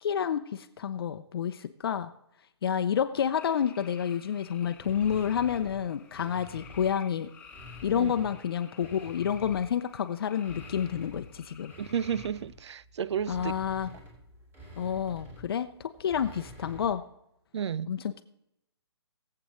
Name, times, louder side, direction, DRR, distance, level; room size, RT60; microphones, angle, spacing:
voice 1, 0.0-2.1 2.6-7.3 7.8-11.7 13.3-13.9 14.8-17.0 17.9-18.2, left 8 dB, 55° left, 0.6 m, -29 dB
sound 1, 3.4-12.3, left 6 dB, 10° left, 1.0 m, -53 dB
sound 2, 4.8-7.0 7.4-9.8 10.3-17.0, left 1 dB, 15° right, 2.9 m, -49 dB
voice 2, 11.8-13.5 17.5-17.9, right 8 dB, 75° right, 0.4 m, -32 dB
21.5 x 7.7 x 3.1 m
hypercardioid pair, 155°, 14 cm